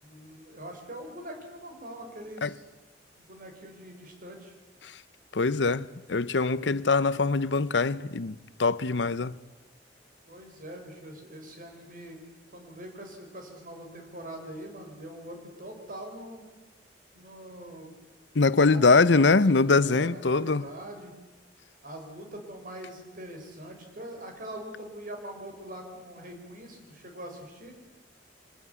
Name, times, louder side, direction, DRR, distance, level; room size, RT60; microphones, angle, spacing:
voice 1, 0.0-2.6 3.2-4.5 10.3-12.2 12.5-16.4 17.1-17.9 18.6-19.4 19.8-21.1 21.8-27.7, right 1 dB, 50° right, 6.0 m, -43 dB
voice 2, 5.3-9.4 18.3-20.7, left 3 dB, 75° left, 0.8 m, -23 dB
26.0 x 20.5 x 9.7 m
head